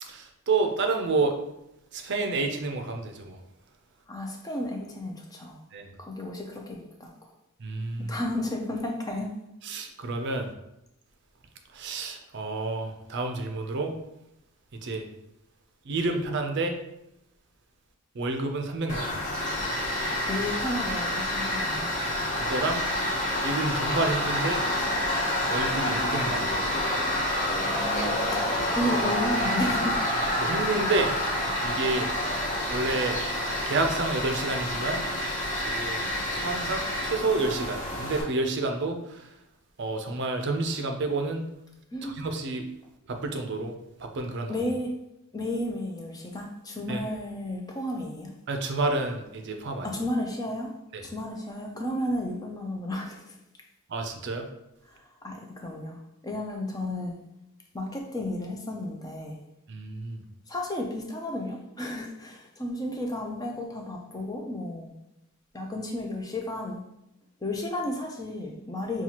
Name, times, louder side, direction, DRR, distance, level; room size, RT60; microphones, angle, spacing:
voice 1, 0.0-1.4 1.9-3.4 5.7-5.9 7.6-8.2 9.6-10.5 11.7-13.9 14.8-15.1 15.8-16.8 18.1-19.1 22.1-22.8 23.4-24.6 25.5-26.5 30.4-31.1 31.6-32.1 32.7-33.2 33.7-35.0 35.6-36.0 36.3-39.4 39.8-41.5 42.0-42.7 43.1-43.7 44.0-44.6 46.9-47.0 48.5-50.0 50.9-51.1 53.9-54.5 59.7-60.2, right 3 dB, 50° right, 4 dB, 0.5 m, -29 dB
voice 2, 4.1-5.6 6.0-7.1 8.1-9.3 20.3-21.9 28.2-30.0 41.9-42.2 44.5-44.9 45.3-48.3 49.8-50.7 51.0-53.4 54.9-57.1 57.7-59.4 60.5-64.9 65.5-66.8 67.4-69.0, left 1 dB, 15° left, 1 dB, 0.4 m, -33 dB
Tools, 18.9-38.2, left 1 dB, 35° left, 0.8 m, -28 dB
5.7 x 2.3 x 2.9 m, 0.86 s
head